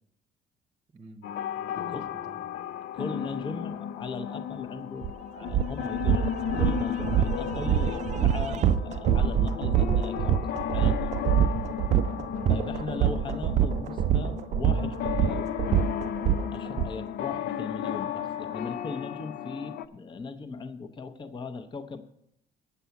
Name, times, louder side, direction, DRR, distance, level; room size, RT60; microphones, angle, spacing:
voice 1, 0.9-1.3 1.6-2.5 12.3-12.7 21.0-21.3, right 3 dB, 30° right, 7 dB, 0.9 m, -49 dB
sound 1, 1.2-19.9, left 10 dB, 75° left, 0.6 m, -34 dB
voice 2, 2.9-6.3 6.6-10.4 10.7-11.1 12.5-15.5 16.5-22.0, left 4 dB, 30° left, 7 dB, 0.8 m, -38 dB
sound 2, 5.0-5.1 5.5-16.9, right 9 dB, 45° right, 0.4 m, -25 dB
8.2 x 7.7 x 6.9 m, 0.76 s
cardioid pair, 110°, 17 cm